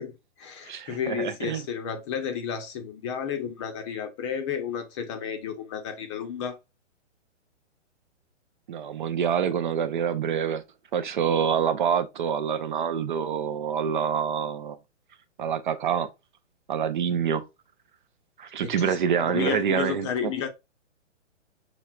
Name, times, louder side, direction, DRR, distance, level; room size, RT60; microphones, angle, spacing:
voice 1, 0.0-6.6 18.6-20.5, left 8 dB, 25° left, 0.7 m, -32 dB
voice 2, 0.6-1.6 8.7-10.6 10.9-14.8 15.4-16.1 16.7-17.5 18.4-20.3, right 7 dB, 45° right, 0.5 m, -26 dB
6.1 x 3.2 x 2.3 m
hypercardioid pair, 150°, 36 cm